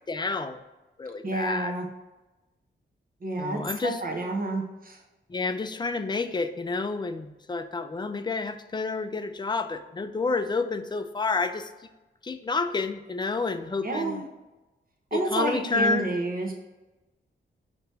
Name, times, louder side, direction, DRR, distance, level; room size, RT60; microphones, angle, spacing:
voice 1, 0.1-0.6 1.0-1.7 3.4-4.0 5.3-11.7 12.2-14.2 15.1-16.1, left 3 dB, 20° left, 8 dB, 0.4 m, -29 dB
voice 2, 1.2-1.9 3.2-5.0 13.8-14.2 15.1-16.5, right 2 dB, 45° right, 1 dB, 0.9 m, -29 dB
6.7 x 3.0 x 4.6 m, 1.1 s
wide cardioid pair, 100°, 20 cm